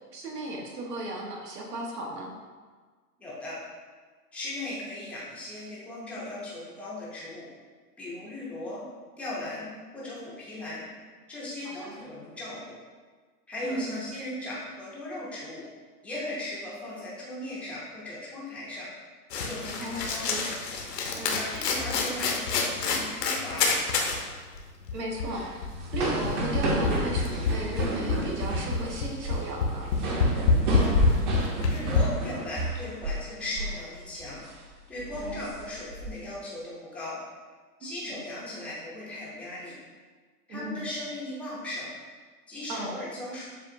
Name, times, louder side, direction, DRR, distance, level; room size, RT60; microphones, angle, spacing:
voice 1, 0.1-2.3 11.6-12.0 13.6-14.0 19.8-20.5 21.2-21.5 24.9-25.4 25.9-29.9 35.1-35.5 40.5-40.8 42.7-42.9, right 1 dB, 80° right, -1 dB, 1.3 m, -35 dB
voice 2, 3.2-3.6 4.3-7.5 8.0-8.8 9.2-10.9 11.3-12.8 13.5-15.6 16.0-18.9 19.3-20.5 21.4-23.7 30.6-31.0 31.7-34.4 34.9-37.2 37.8-39.8 40.5-41.9 42.5-43.4, left 1 dB, 5° left, -8 dB, 0.5 m, -37 dB
sound 1, 19.3-24.2 24.5-24.6 24.9-32.0, left 4 dB, 85° left, 0.9 m, -27 dB
sound 2, 25.2-33.3 33.5-33.8 34.2-34.5 35.0-36.1, right 1 dB, 30° right, 0.8 m, -32 dB
7.2 x 2.4 x 2.6 m, 1.5 s
hypercardioid pair, 130°, 48 cm